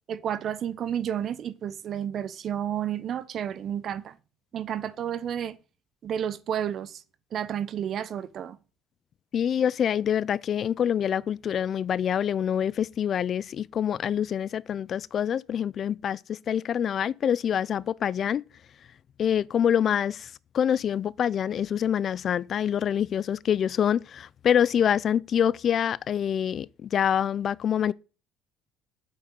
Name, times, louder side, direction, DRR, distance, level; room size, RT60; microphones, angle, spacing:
voice 1, 0.1-4.2 4.5-5.6 6.0-7.0 7.3-8.6, right 9 dB, 50° right, 1.2 m, -31 dB
voice 2, 9.3-18.4 19.2-20.3 20.5-27.9, left 9 dB, 50° left, 0.5 m, -26 dB
9.2 x 7.9 x 8.3 m
hypercardioid pair, 70°, 0 cm